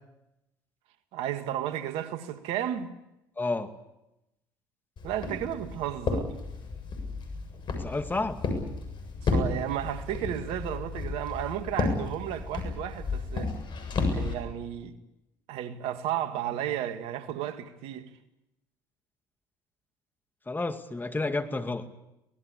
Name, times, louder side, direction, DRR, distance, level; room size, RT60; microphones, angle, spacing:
voice 1, 1.1-2.9 5.0-6.3 9.2-13.5 14.1-15.0 15.5-18.1, right 11 dB, 70° right, 2.0 m, -33 dB
voice 2, 3.4-3.7 7.8-8.4 20.5-21.9, left 3 dB, 20° left, 2.3 m, -30 dB
Walk footsteps, 5.0-14.3, left 3 dB, 50° left, 7.5 m, -32 dB
25.0 x 19.5 x 8.5 m
hypercardioid pair, 65°, 10 cm